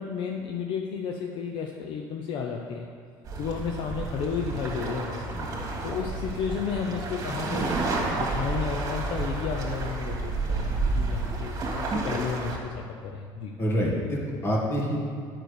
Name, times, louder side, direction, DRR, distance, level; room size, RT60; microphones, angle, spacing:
voice 1, 0.0-2.9 3.4-5.3 5.8-7.7 8.2-13.6, left 6 dB, 60° left, 2 dB, 0.8 m, -32 dB
sound 1, 3.3-12.6, right 3 dB, 40° right, 2.2 m, -30 dB
voice 2, 13.6-15.0, equal, 25° left, -3 dB, 2.2 m, -27 dB
9.4 x 5.9 x 6.6 m, 2.1 s
cardioid pair, 120°, 9 cm